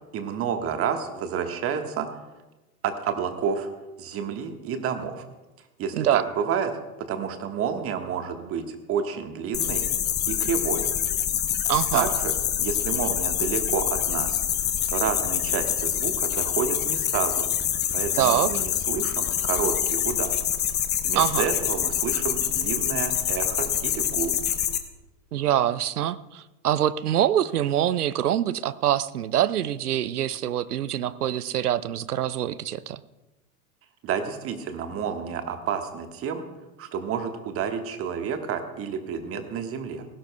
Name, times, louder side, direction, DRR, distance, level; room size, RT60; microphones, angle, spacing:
voice 1, 0.1-2.1 2.8-3.7 4.0-5.3 5.8-6.7 7.0-9.8 10.3-10.8 11.9-14.4 14.9-17.5 17.9-20.4 21.0-24.3 34.0-36.4 36.8-40.1, right 7 dB, 30° right, 6 dB, 1.4 m, -30 dB
sound 1, 9.5-24.8, left 10 dB, 20° left, 0.9 m, -26 dB
voice 2, 11.7-12.1 18.2-18.6 21.1-21.4 25.3-33.0, right 11 dB, 75° right, 17 dB, 0.7 m, -25 dB
19.5 x 16.5 x 2.3 m, 1.1 s
figure-of-eight pair, 90°, 46 cm